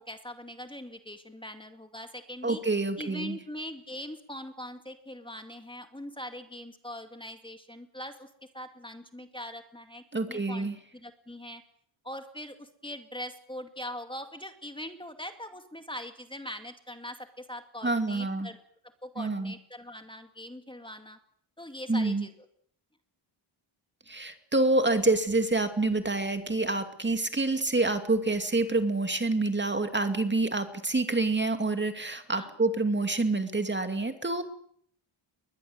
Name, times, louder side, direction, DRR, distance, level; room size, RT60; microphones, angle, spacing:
voice 1, 0.0-2.6 3.0-8.3 8.5-10.7 10.9-11.6 12.0-18.6 19.0-21.2 21.6-22.3 32.3-32.5, left 1 dB, 10° left, 7 dB, 2.3 m, -42 dB
voice 2, 2.4-3.4 10.1-10.8 17.8-18.5 19.2-19.5 21.9-22.3 24.1-34.4, right 2 dB, 20° right, 8 dB, 2.4 m, -27 dB
22.0 x 20.5 x 7.9 m, 0.64 s
cardioid pair, 95°, 50 cm